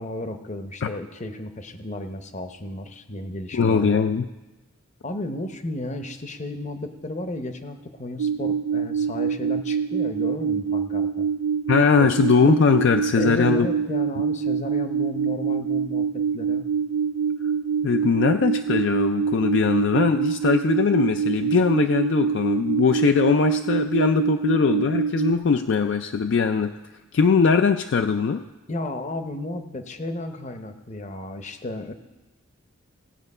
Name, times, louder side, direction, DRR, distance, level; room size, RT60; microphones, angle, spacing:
voice 1, 0.0-4.0 5.0-11.3 12.0-12.1 13.2-16.7 28.7-31.9, left 1 dB, 35° left, 8 dB, 0.7 m, -33 dB
voice 2, 3.5-4.3 11.7-13.7 17.8-26.7 27.1-28.4, left 5 dB, 55° left, 7 dB, 0.3 m, -20 dB
sound 1, 8.2-25.3, right 6 dB, 85° right, 0.3 m, -25 dB
17.0 x 7.8 x 5.4 m, 1.1 s
head